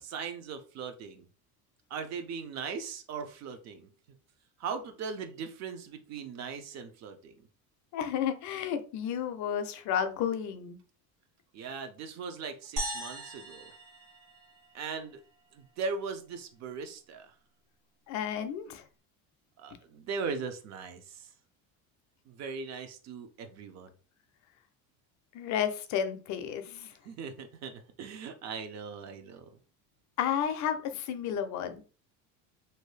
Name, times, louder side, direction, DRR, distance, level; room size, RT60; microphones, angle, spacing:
voice 1, 0.0-1.3 1.9-3.9 4.6-7.5 11.5-13.7 14.7-15.2 15.5-17.3 19.6-21.3 22.3-23.9 27.0-29.5, right 5 dB, 40° right, 0.5 m, -39 dB
voice 2, 7.9-10.8 18.1-18.8 25.3-26.9 30.2-31.8, left 8 dB, 45° left, 0.4 m, -32 dB
sound 1, 12.8-15.2, right 1 dB, 80° right, 1.3 m, -39 dB
2.7 x 2.2 x 3.1 m
cardioid pair, 150°, 42 cm